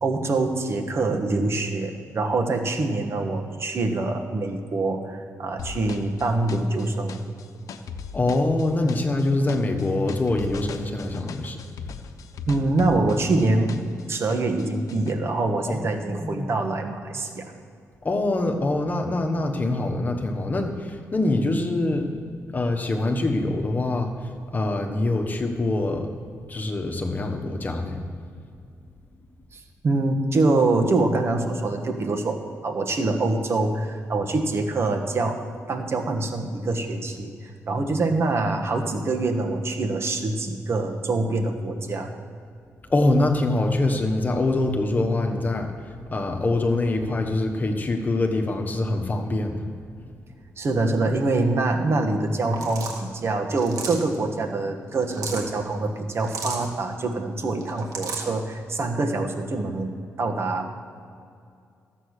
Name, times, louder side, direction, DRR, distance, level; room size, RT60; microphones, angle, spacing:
voice 1, 0.0-7.2 12.5-13.8 14.1-17.5 29.5-32.4 32.6-42.1 50.6-59.9 60.2-60.6, right 2 dB, 50° right, 4 dB, 1.4 m, -25 dB
sound 1, 5.6-14.0 14.3-15.1, left 6 dB, 75° left, 0.8 m, -38 dB
voice 2, 8.1-11.6 15.7-15.9 16.2-16.5 18.0-22.1 22.5-26.1 26.5-28.0 42.9-45.7 46.1-49.7, left 2 dB, 30° left, 4 dB, 1.3 m, -24 dB
sound 2, 52.5-53.0 53.6-54.1 54.9-55.5 56.2-56.7 57.6-58.3, right 4 dB, 80° right, 2.0 m, -33 dB
14.0 x 7.8 x 6.5 m, 2.4 s
cardioid pair, 105°, 6 cm